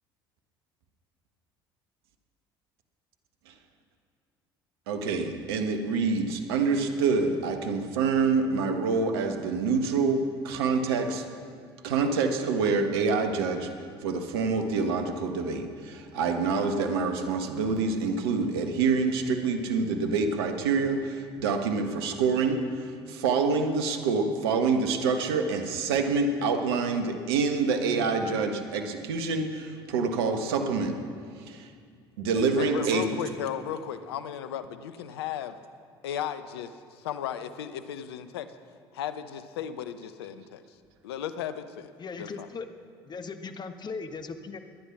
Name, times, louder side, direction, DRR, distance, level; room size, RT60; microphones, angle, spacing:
voice 1, 4.9-11.3 11.8-31.0 31.3-31.7 32.2-33.1, right 4 dB, 75° right, 6 dB, 1.4 m, -27 dB
voice 2, 32.6-35.6 36.0-38.5 38.9-40.6 41.0-42.5, left 9 dB, 75° left, 12 dB, 0.8 m, -35 dB
voice 3, 42.0-42.7 43.1-44.6, left 4 dB, 35° left, 8 dB, 1.3 m, -38 dB
21.0 x 10.0 x 6.0 m, 2.2 s
hypercardioid pair, 60°, 13 cm